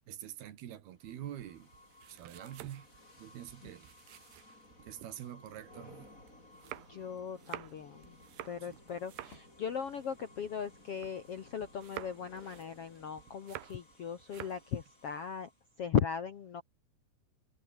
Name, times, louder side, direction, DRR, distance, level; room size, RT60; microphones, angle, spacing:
voice 1, 0.1-1.7 2.1-2.9 3.2-3.9 4.8-6.1 8.7-8.8, right 11 dB, 75° right, 3.7 m, -46 dB
sound 1, 1.0-15.7, left 1 dB, 20° left, 8.1 m, -59 dB
sound 2, 1.0-5.1 5.5-11.4 11.6-14.0 14.2-14.7, right 15 dB, 90° right, 3.3 m, -50 dB
voice 2, 6.9-8.2 8.4-15.5 15.8-16.6, left 7 dB, 60° left, 1.6 m, -37 dB
omnidirectional pair, 4.6 m